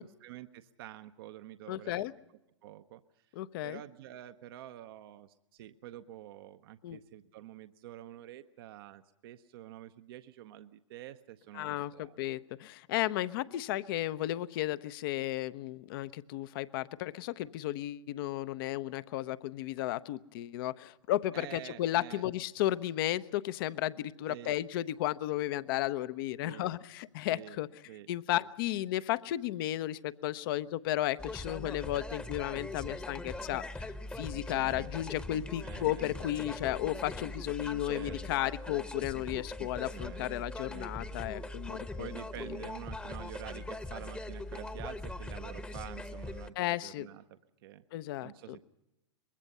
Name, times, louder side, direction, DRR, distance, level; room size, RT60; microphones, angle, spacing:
voice 1, 0.0-2.1 2.6-3.3 3.6-12.2 21.3-22.2 24.3-24.6 26.4-26.7 27.3-27.6 27.9-28.5 34.6-34.9 35.6-36.5 37.9-38.2 39.9-40.2 40.7-40.9 42.0-47.8 48.2-48.6, right 13 dB, 55° right, 10 dB, 0.8 m, -48 dB
voice 2, 1.7-2.1 3.4-3.8 6.8-7.0 11.5-27.7 28.1-42.1 46.6-47.1 47.9-48.6, left 14 dB, 50° left, 16 dB, 0.8 m, -34 dB
sound 1, 31.2-46.5, left 2 dB, 5° left, 1.0 m, -41 dB
24.0 x 21.5 x 5.5 m, 0.91 s
figure-of-eight pair, 105°, 15 cm